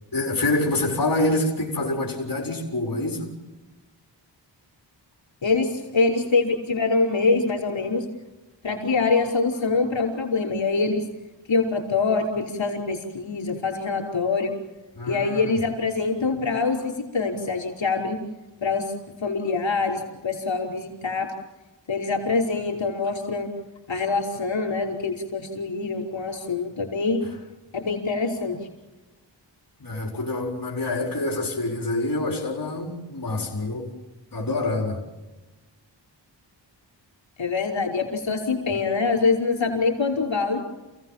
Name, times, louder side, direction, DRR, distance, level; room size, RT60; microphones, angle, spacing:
voice 1, 0.1-3.3 14.9-15.6 29.8-33.9 34.3-35.0, left 2 dB, 50° left, 4.6 m, -26 dB
voice 2, 5.4-8.0 8.6-11.0 11.5-14.5 15.1-18.2 18.6-18.9 19.2-21.3 21.9-23.5 23.9-27.2 27.7-28.6 37.4-40.6, left 4 dB, 75° left, 5.2 m, -24 dB
29.0 x 17.0 x 7.4 m
wide cardioid pair, 95°, 45 cm